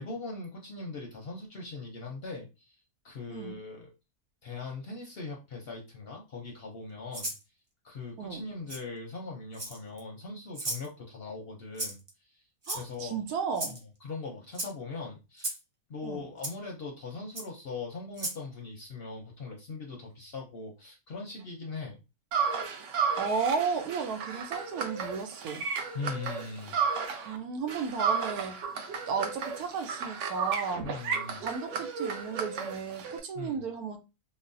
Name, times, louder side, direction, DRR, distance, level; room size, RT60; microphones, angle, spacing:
voice 1, 0.0-2.7 3.0-3.9 4.4-7.3 7.8-12.0 12.7-13.2 13.7-15.5 15.9-22.0 25.9-26.8 27.1-27.2 30.8-31.5 33.3-33.6, left 3 dB, 60° left, 0.7 m, -40 dB
Rattle (instrument), 7.1-7.4 8.7-8.8 9.5-10.0 10.5-10.9 11.8-12.1 12.6-13.1 13.5-13.8 14.5-14.7 15.4-15.6 16.4-16.5 17.3-17.5 18.1-18.4, right 2 dB, 35° right, 0.5 m, -35 dB
voice 2, 12.7-13.8 16.0-16.2 23.2-25.6 27.2-28.6 29.1-30.8 31.4-34.0, right 5 dB, 90° right, 1.2 m, -33 dB
sound 1, 22.3-27.4 27.7-33.2, right 6 dB, 65° right, 0.8 m, -33 dB
3.9 x 2.0 x 2.6 m
omnidirectional pair, 1.5 m